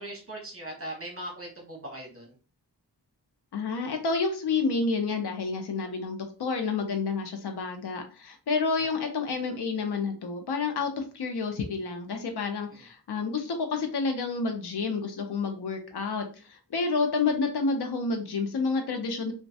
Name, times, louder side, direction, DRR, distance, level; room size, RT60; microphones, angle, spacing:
voice 1, 0.0-2.3, right 1 dB, 35° right, -1 dB, 0.9 m, -39 dB
voice 2, 3.5-19.3, left 4 dB, 80° left, 4 dB, 0.6 m, -29 dB
3.0 x 2.2 x 2.7 m, 0.36 s
wide cardioid pair, 80°, 39 cm